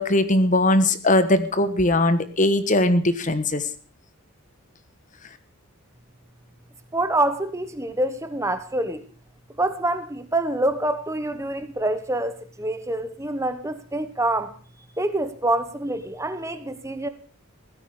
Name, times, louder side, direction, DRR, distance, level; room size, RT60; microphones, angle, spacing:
voice 1, 0.0-3.6, left 1 dB, 35° left, 12 dB, 1.3 m, -20 dB
voice 2, 6.9-9.0 9.6-14.5 15.0-17.1, right 1 dB, 15° right, 11 dB, 1.1 m, -26 dB
16.0 x 14.0 x 4.9 m, 0.40 s
head